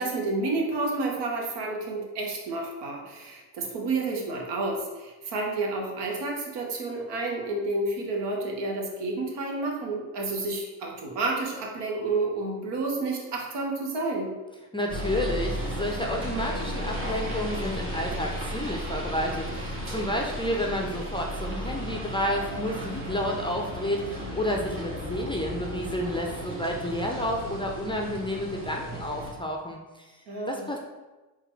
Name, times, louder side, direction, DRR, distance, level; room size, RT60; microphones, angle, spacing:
voice 1, 0.0-14.3 30.3-30.7, right 3 dB, 70° right, 0 dB, 1.0 m, -30 dB
voice 2, 14.7-30.1 30.5-30.8, left 1 dB, 10° left, 0 dB, 0.5 m, -30 dB
sound 1, 14.9-29.3, equal, 30° right, 1.3 m, -34 dB
3.9 x 2.3 x 4.4 m, 1.2 s
supercardioid pair, 70°, 43 cm